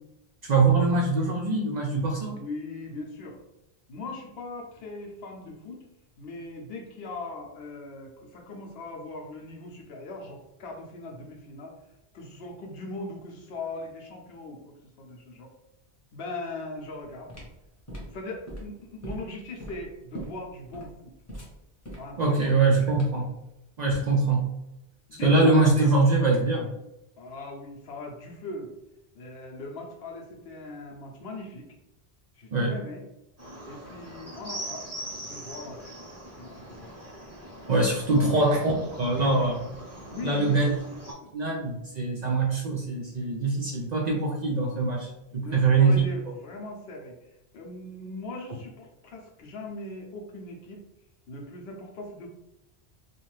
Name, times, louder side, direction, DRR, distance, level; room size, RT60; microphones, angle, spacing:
voice 1, 0.4-2.4 22.2-23.3 23.8-24.5 25.2-26.7 32.5-32.8 37.7-39.7 40.2-40.7 41.3-46.0, right 3 dB, 55° right, -1 dB, 0.5 m, -23 dB
voice 2, 2.2-3.4 3.9-5.8 6.2-11.7 12.1-15.5 16.1-17.3 18.1-21.1 22.0-22.8 25.1-25.5 27.2-28.7 29.1-31.7 32.4-33.0 33.6-34.9 35.2-35.9 36.4-37.0 38.2-38.3 40.1-40.6 41.2-41.3 45.3-50.8 51.3-52.3, left 2 dB, 70° left, 0 dB, 0.9 m, -40 dB
sound 1, 17.3-23.3, right 1 dB, 15° left, 0.8 m, -42 dB
sound 2, 33.4-41.1, right 1 dB, 15° right, 0.8 m, -42 dB
2.5 x 2.4 x 3.1 m, 0.89 s
omnidirectional pair, 1.1 m